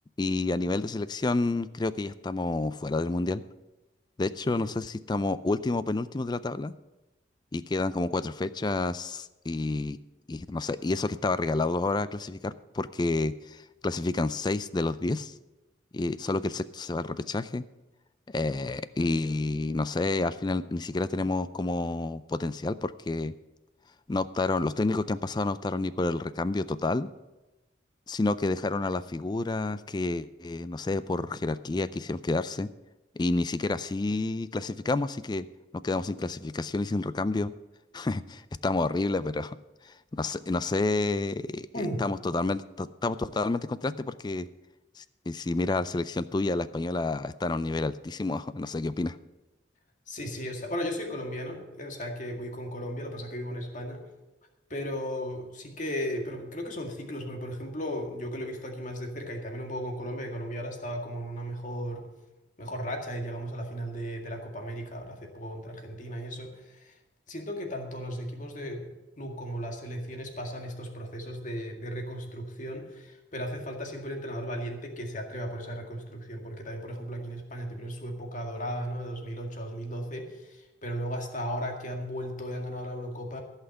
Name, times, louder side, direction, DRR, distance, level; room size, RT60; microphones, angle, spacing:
voice 1, 0.2-3.4 4.2-6.7 7.5-10.0 10.3-15.3 15.9-17.6 18.3-23.3 24.1-27.1 28.1-32.7 33.2-35.5 35.7-37.5 37.9-39.6 39.8-44.5 45.0-49.2, left 2 dB, 20° left, 15 dB, 0.3 m, -29 dB
voice 2, 50.1-54.0 54.7-62.1 62.6-67.0 67.3-68.9 69.2-83.4, equal, 40° left, 2 dB, 1.9 m, -36 dB
15.0 x 5.7 x 7.9 m, 1.1 s
head